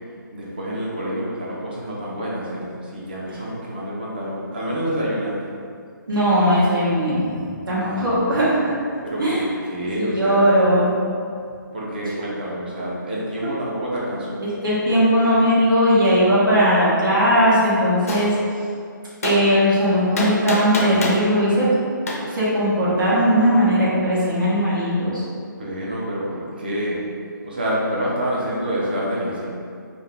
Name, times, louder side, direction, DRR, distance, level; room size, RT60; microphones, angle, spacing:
voice 1, 0.3-5.3 7.8-8.2 9.0-10.5 11.7-14.4 25.6-27.0 27.4-29.5, equal, 30° right, -5 dB, 0.5 m, -27 dB
voice 2, 6.1-8.8 9.2-9.4 10.0-10.9 13.4-13.5 14.6-18.3 19.2-21.7 22.2-25.2, equal, 80° right, -8 dB, 1.0 m, -18 dB
Gunshot gunfire, 18.1-18.3 19.2-19.4 20.2-21.2 22.1-22.2, left 2 dB, 45° left, 0.4 m, -24 dB
2.6 x 2.4 x 3.2 m, 2.3 s
hypercardioid pair, 180°, 11 cm